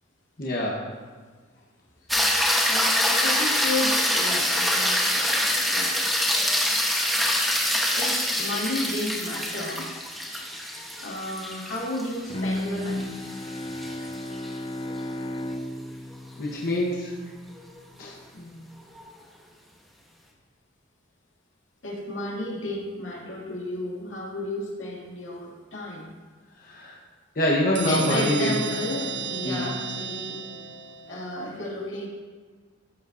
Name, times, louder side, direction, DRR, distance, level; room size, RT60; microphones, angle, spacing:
voice 1, 0.4-0.9 16.4-17.1 18.0-18.2 26.6-27.0 27.4-28.5 29.4-29.7, left 1 dB, 45° left, -4 dB, 1.2 m, -25 dB
sound 1, 2.1-14.5 19.0-19.1, equal, ahead, 1.1 m, -25 dB
voice 2, 2.6-6.0 7.9-9.9 11.0-13.0 13.9-14.0 18.3-18.6 21.8-26.0 27.9-30.4 31.1-32.1, left 1 dB, 70° left, -4 dB, 2.5 m, -33 dB
Bowed string instrument, 12.3-17.4, left 1 dB, 25° left, 0.3 m, -34 dB
sound 2, 27.7-31.3, right 5 dB, 60° right, 0.6 m, -32 dB
14.0 x 8.2 x 2.7 m, 1.5 s
head